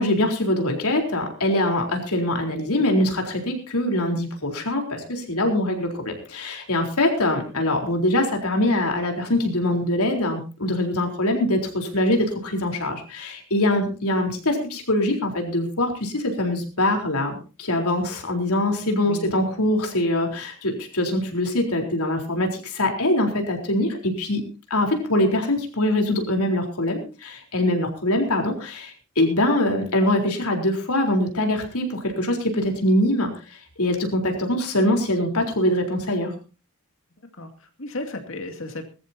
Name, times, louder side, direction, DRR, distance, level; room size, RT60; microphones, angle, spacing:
voice 1, 0.0-24.4 24.7-33.3 33.8-36.3, left 1 dB, 80° left, 2 dB, 4.1 m, -23 dB
voice 2, 37.4-38.9, left 1 dB, 60° left, 5 dB, 2.5 m, -34 dB
21.0 x 14.0 x 2.8 m, 0.34 s
head